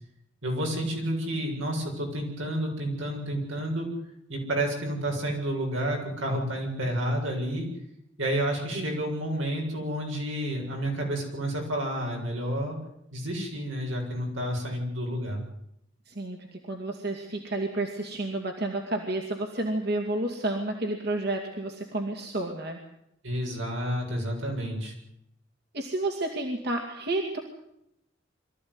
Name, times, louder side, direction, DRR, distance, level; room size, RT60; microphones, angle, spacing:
voice 1, 0.4-3.9 4.3-7.7 8.2-12.8 13.1-15.4 23.2-24.9, right 1 dB, 85° right, 0 dB, 7.3 m, -30 dB
voice 2, 8.7-9.1 16.1-22.8 25.7-27.4, right 2 dB, 55° right, 2 dB, 2.6 m, -31 dB
24.0 x 14.5 x 9.7 m, 0.81 s
head